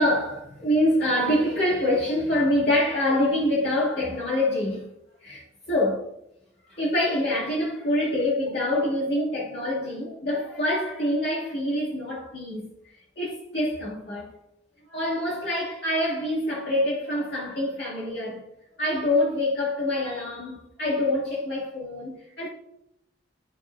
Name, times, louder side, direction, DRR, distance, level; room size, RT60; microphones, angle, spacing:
voice 1, 0.0-4.9 5.2-6.0 6.7-12.7 13.2-14.3 14.9-18.4 18.8-22.5, left 1 dB, 55° left, 2.7 m, -25 dB
13.5 x 4.7 x 2.7 m
head